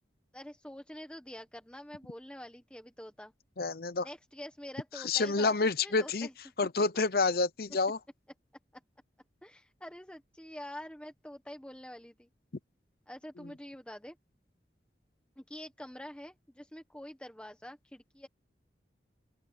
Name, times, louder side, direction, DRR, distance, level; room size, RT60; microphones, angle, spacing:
voice 1, 0.3-3.3 4.0-6.3 9.4-12.3 13.1-14.1 15.4-18.3, left 1 dB, 5° left, 1.5 m, -46 dB
voice 2, 3.6-4.1 5.0-6.3 6.6-8.0 13.4-13.5, left 3 dB, 55° left, 0.8 m, -28 dB
open air
head